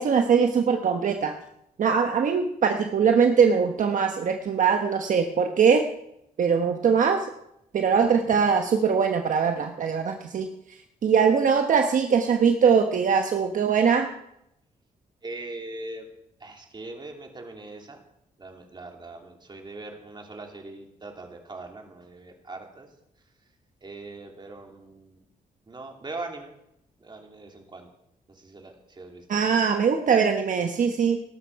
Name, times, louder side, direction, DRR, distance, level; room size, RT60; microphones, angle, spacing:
voice 1, 0.0-1.3 1.8-5.8 6.4-7.2 7.7-10.5 11.0-14.1 29.3-31.2, right 6 dB, 60° right, 5 dB, 1.1 m, -21 dB
voice 2, 15.2-16.1 16.4-18.0 18.4-22.9 23.8-25.2 25.7-26.5 27.0-27.9 28.4-29.5, right 2 dB, 30° right, 2 dB, 2.9 m, -41 dB
17.5 x 12.5 x 4.7 m, 0.80 s
cardioid pair, 110°, 15 cm